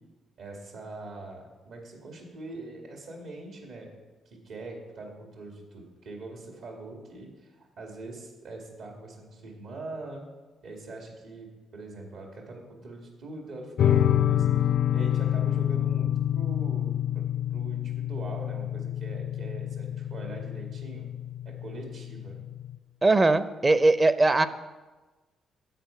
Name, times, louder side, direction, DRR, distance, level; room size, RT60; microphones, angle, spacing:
voice 1, 0.4-3.9 4.3-10.2 10.6-21.1 21.4-22.4, right 2 dB, 75° right, 1 dB, 2.2 m, -43 dB
sound 1, 13.8-22.8, left 11 dB, 65° left, 0.4 m, -27 dB
voice 2, 23.0-24.5, right 2 dB, 25° right, 13 dB, 0.6 m, -20 dB
9.1 x 7.9 x 5.7 m, 1.2 s
cardioid pair, 90°, 0 cm